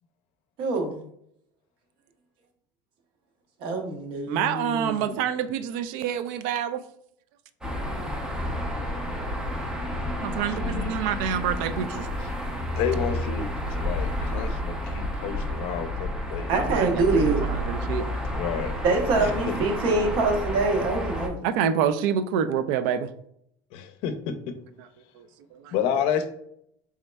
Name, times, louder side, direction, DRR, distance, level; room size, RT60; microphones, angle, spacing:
voice 1, 0.6-1.0 3.6-5.2 16.5-17.4 18.8-21.5, right 3 dB, 50° right, 3 dB, 0.8 m, -25 dB
voice 2, 4.3-6.8 7.8-7.9 8.5-8.6 8.9-9.2 9.6-9.8 10.2-12.1 15.6-15.8 16.4-18.1 21.4-23.1 24.8-24.9 25.1-25.7, right 8 dB, 65° right, 11 dB, 0.4 m, -28 dB
sound 1, 7.6-21.3, equal, 5° right, 0.5 m, -30 dB
voice 3, 10.3-10.9 12.8-16.5 18.3-18.7 19.2-19.5 23.7-24.3 25.7-26.3, left 8 dB, 60° left, 8 dB, 0.5 m, -30 dB
4.1 x 3.6 x 2.2 m, 0.70 s
cardioid pair, 165°, 11 cm